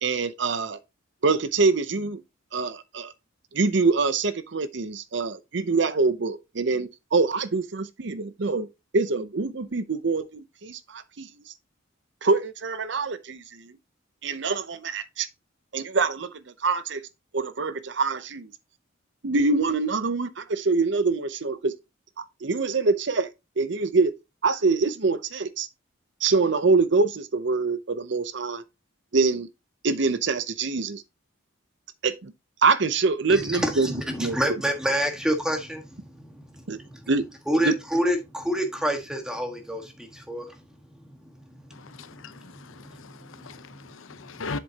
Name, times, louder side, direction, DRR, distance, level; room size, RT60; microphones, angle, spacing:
voice 1, 0.0-0.8 1.2-2.2 2.5-3.1 3.5-8.7 8.9-11.3 12.2-13.7 14.2-15.3 15.7-17.0 17.3-18.5 19.2-21.7 22.4-23.3 23.6-24.1 24.4-25.7 26.2-28.6 29.1-29.5 29.8-31.0 32.0-32.3 32.6-33.9 34.2-34.4 36.7-36.8 37.1-37.2 37.5-37.7, right 4 dB, 60° right, 0.7 m, -25 dB
voice 2, 33.3-37.0 37.5-40.6 41.7-41.8 42.1-42.5 43.2-43.8, equal, 5° right, 1.5 m, -28 dB
voice 3, 41.7-44.6, left 3 dB, 80° left, 0.8 m, -39 dB
7.5 x 7.4 x 2.8 m
head